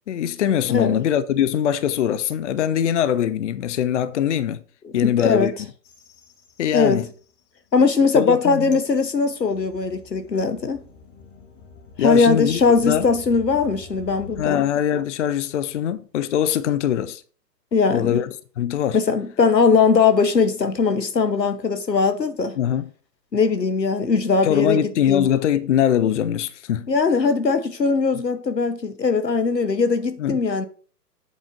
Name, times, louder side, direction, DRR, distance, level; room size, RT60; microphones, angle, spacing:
voice 1, 0.1-4.6 4.9-5.5 6.6-7.1 8.1-8.8 12.0-13.0 14.4-17.2 17.9-18.3 18.6-19.0 22.6-22.9 24.4-26.9 30.2-30.4, left 10 dB, 50° left, 0.6 m, -22 dB
voice 2, 0.7-1.0 4.8-5.5 6.7-7.0 7.7-10.8 12.0-14.6 17.7-18.2 18.9-22.6 23.3-25.3 26.9-30.7, left 4 dB, 90° left, 1.2 m, -20 dB
sound 1, 5.8-7.4 7.8-14.5, left 3 dB, 25° left, 1.5 m, -45 dB
8.1 x 4.1 x 5.8 m
figure-of-eight pair, 125°, 48 cm